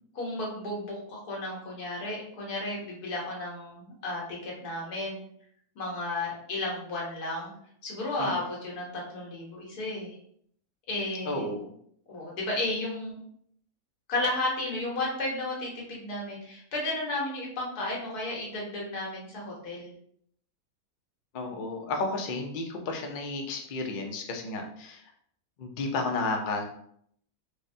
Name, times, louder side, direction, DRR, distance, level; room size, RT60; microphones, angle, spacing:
voice 1, 0.1-5.2 5.8-7.5 7.8-10.2 10.9-11.5 12.1-13.2 14.1-19.9, left 2 dB, 90° left, -3 dB, 1.6 m, -33 dB
voice 2, 11.3-11.6 21.3-25.0 25.6-26.6, left 3 dB, 60° left, 2 dB, 0.5 m, -32 dB
4.6 x 2.1 x 2.6 m, 0.67 s
omnidirectional pair, 1.6 m